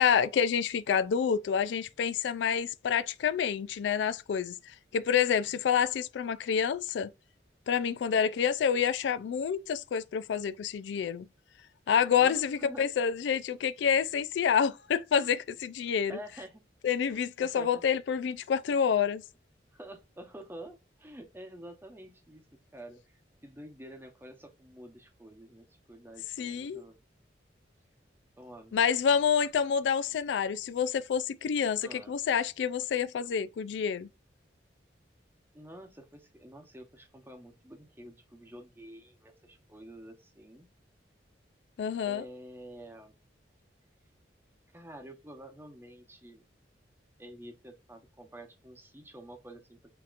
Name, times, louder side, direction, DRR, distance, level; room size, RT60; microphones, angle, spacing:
voice 1, 0.0-4.6 4.9-7.1 7.7-11.3 11.9-16.2 16.8-19.2 26.4-26.8 28.7-34.1 41.8-42.2, left 7 dB, 80° left, 0.3 m, -28 dB
voice 2, 12.1-12.9 15.9-16.6 17.1-17.8 19.7-27.0 28.4-28.7 31.8-32.1 35.5-40.7 42.0-43.2 44.7-46.4 47.2-49.9, right 1 dB, 15° right, 0.8 m, -48 dB
7.1 x 2.9 x 2.5 m
head